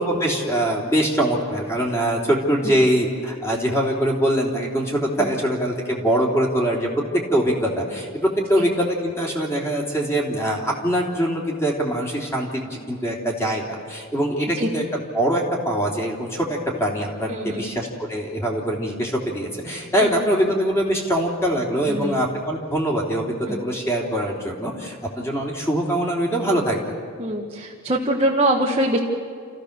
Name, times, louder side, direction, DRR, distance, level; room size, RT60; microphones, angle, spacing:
voice 1, 0.0-7.0 7.3-26.8, right 1 dB, 10° left, -1 dB, 3.1 m, -23 dB
voice 2, 17.3-17.6 20.0-20.1 21.9-22.2 23.5-23.6 27.2-29.0, right 1 dB, 25° right, -2 dB, 1.5 m, -23 dB
29.0 x 15.0 x 6.7 m, 2.1 s
head